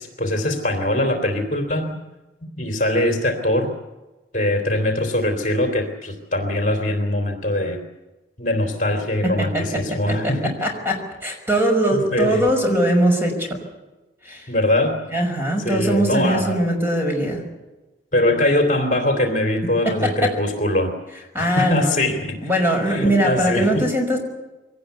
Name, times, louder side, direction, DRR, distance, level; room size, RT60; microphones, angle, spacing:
voice 1, 0.0-2.0 2.6-3.7 4.3-7.8 8.4-10.5 11.9-12.4 14.5-15.0 15.6-16.6 18.1-20.9 21.4-22.4 22.9-23.9, left 1 dB, 45° left, 4 dB, 3.1 m, -22 dB
voice 2, 9.2-9.8 10.1-10.2 10.6-13.6 14.2-14.5 15.1-17.4 19.8-20.3 21.3-22.0 22.4-24.2, right 1 dB, 10° right, 2 dB, 5.8 m, -21 dB
23.5 x 18.5 x 8.2 m, 1.1 s
head